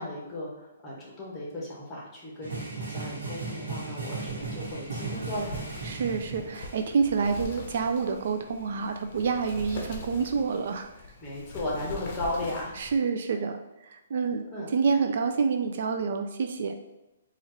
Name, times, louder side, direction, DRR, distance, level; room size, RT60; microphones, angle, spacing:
voice 1, 0.0-5.5 11.2-12.7 14.5-14.7, left 1 dB, 15° left, -4 dB, 1.3 m, -35 dB
sound 1, 2.4-6.8, right 3 dB, 75° right, 1.1 m, -36 dB
Wind, 4.3-12.9, left 2 dB, 45° left, 0.7 m, -43 dB
voice 2, 5.8-10.9 12.8-14.4 14.7-16.8, right 5 dB, 60° right, 6 dB, 0.3 m, -28 dB
4.2 x 2.5 x 3.1 m, 0.98 s
hypercardioid pair, 150°, 0 cm